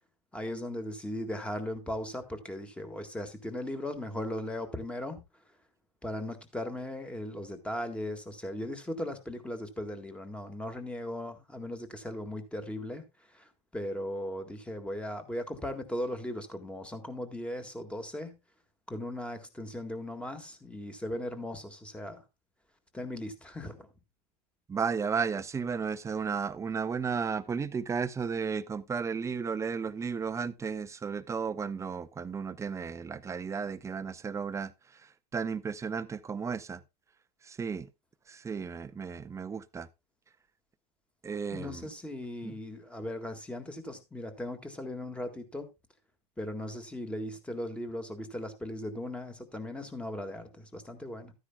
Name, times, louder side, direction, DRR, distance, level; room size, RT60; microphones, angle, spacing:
voice 1, 0.3-5.2 6.0-18.4 18.9-22.2 22.9-23.9 41.5-45.7 46.4-51.3, left 1 dB, 5° left, 1.7 m, -38 dB
voice 2, 24.7-34.7 35.3-36.8 37.4-37.9 38.3-39.9 41.2-41.9 42.4-42.5, right 6 dB, 15° right, 0.6 m, -34 dB
13.0 x 9.8 x 2.2 m
hypercardioid pair, 110°, 20 cm